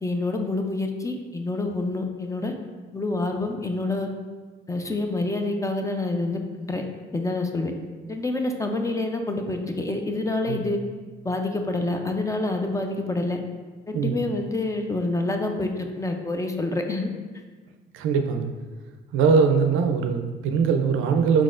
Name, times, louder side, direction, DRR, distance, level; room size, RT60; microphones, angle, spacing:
voice 1, 0.0-2.5 2.9-4.1 4.7-6.8 7.1-7.7 8.1-10.8 11.2-13.4 13.9-17.1, left 2 dB, 15° left, 4 dB, 0.4 m, -27 dB
voice 2, 17.9-18.5 19.1-21.4, right 5 dB, 80° right, 6 dB, 0.4 m, -21 dB
4.6 x 4.0 x 2.5 m, 1.4 s
cardioid pair, 90°, 20 cm